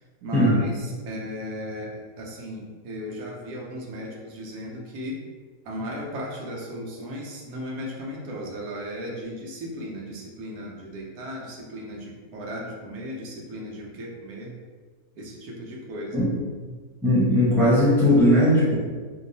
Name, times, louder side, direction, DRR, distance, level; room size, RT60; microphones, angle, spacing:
voice 1, 0.2-5.2 5.6-14.5 15.2-16.2, equal, 90° right, -2 dB, 1.2 m, -36 dB
voice 2, 17.0-18.8, left 1 dB, ahead, -8 dB, 0.7 m, -18 dB
4.6 x 2.7 x 2.6 m, 1.4 s
omnidirectional pair, 1.5 m